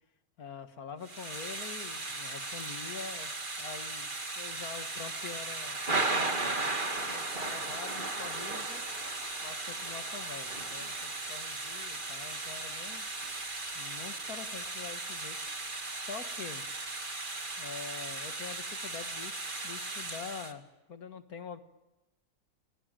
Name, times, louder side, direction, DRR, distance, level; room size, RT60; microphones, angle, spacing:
voice 1, 0.4-4.1 4.4-6.6 6.9-8.8 9.4-13.0 13.7-15.4 15.9-16.7 17.6-21.6, left 6 dB, 75° left, 8 dB, 2.1 m, -45 dB
Thunder / Rain, 1.0-20.5, right 2 dB, 35° right, 2.4 m, -36 dB
29.0 x 21.5 x 9.0 m, 1.0 s
omnidirectional pair, 1.6 m